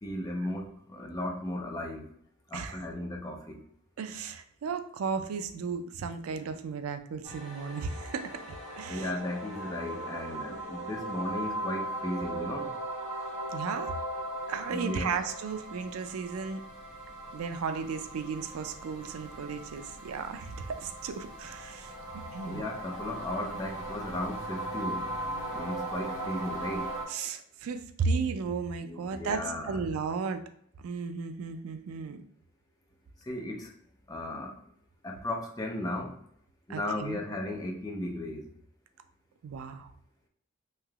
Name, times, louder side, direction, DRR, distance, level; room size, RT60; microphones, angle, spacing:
voice 1, 0.0-2.1 2.5-3.6 8.9-12.8 14.7-15.1 22.4-25.2 25.5-26.9 28.8-29.8 33.2-33.7 34.1-34.6 35.0-36.2 36.7-38.5, left 1 dB, 15° left, 1 dB, 0.5 m, -36 dB
voice 2, 4.0-8.3 8.8-9.1 13.5-14.0 14.5-16.7 17.3-21.9 22.3-22.7 27.1-30.4 30.8-32.2 36.7-37.2 39.4-39.9, right 5 dB, 85° right, 9 dB, 0.4 m, -34 dB
sound 1, 7.2-27.0, right 1 dB, 20° right, 1.1 m, -38 dB
3.2 x 2.9 x 2.3 m, 0.66 s
head